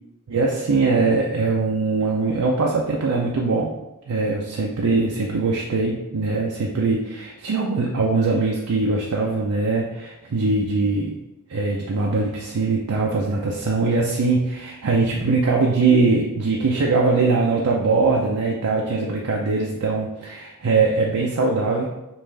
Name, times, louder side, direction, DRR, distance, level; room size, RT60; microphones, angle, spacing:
voice 1, 0.3-3.7 4.1-11.2 11.5-21.9, right 3 dB, 85° right, -2 dB, 0.5 m, -21 dB
5.3 x 2.5 x 3.3 m, 0.97 s
head